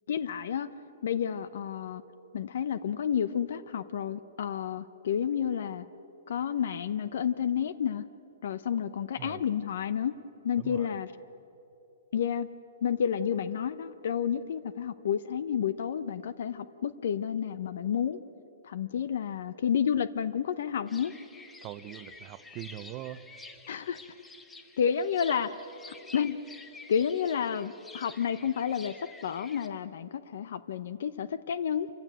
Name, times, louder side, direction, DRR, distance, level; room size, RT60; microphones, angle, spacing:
voice 1, 0.1-0.7 1.0-2.0 2.3-5.9 6.3-8.0 8.4-10.1 10.4-11.1 12.1-12.5 12.8-18.2 18.6-21.1 23.7-24.0 24.8-25.5 25.9-26.4 26.9-28.9 29.2-31.9, left 8 dB, 65° left, 15 dB, 0.8 m, -30 dB
voice 2, 10.6-10.9 21.6-23.3, right 14 dB, 30° right, 14 dB, 0.7 m, -42 dB
sound 1, 20.9-29.7, left 3 dB, 10° left, 1.1 m, -50 dB
26.5 x 15.5 x 8.9 m, 3.0 s
hypercardioid pair, 150°, 0 cm